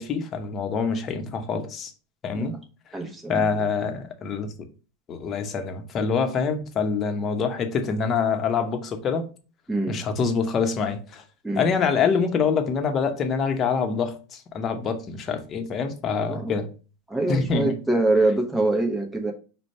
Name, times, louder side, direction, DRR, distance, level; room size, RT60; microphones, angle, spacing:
voice 1, 0.0-1.9 2.2-2.6 3.3-4.5 5.1-9.2 9.9-11.2 11.6-16.7 17.3-17.8, left 5 dB, 40° left, 0.9 m, -25 dB
voice 2, 2.9-3.7 9.7-10.0 11.4-11.7 16.3-16.6 17.1-19.3, right 2 dB, 5° right, 0.9 m, -24 dB
5.0 x 2.2 x 4.2 m
hypercardioid pair, 90°, 0 cm